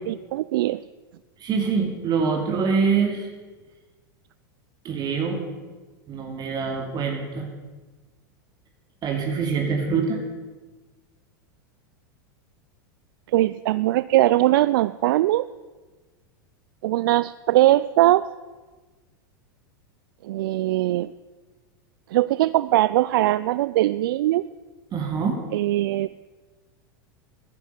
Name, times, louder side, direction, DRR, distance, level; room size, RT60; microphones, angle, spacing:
voice 1, 0.1-0.8 13.3-15.5 16.8-18.3 20.2-21.1 22.1-24.4 25.5-26.1, right 15 dB, 70° right, 16 dB, 0.4 m, -21 dB
voice 2, 1.4-3.3 4.8-5.4 6.1-7.5 9.0-10.2 24.9-25.4, right 5 dB, 35° right, 3 dB, 2.6 m, -24 dB
14.5 x 10.0 x 8.1 m, 1.3 s
hypercardioid pair, 105°, 12 cm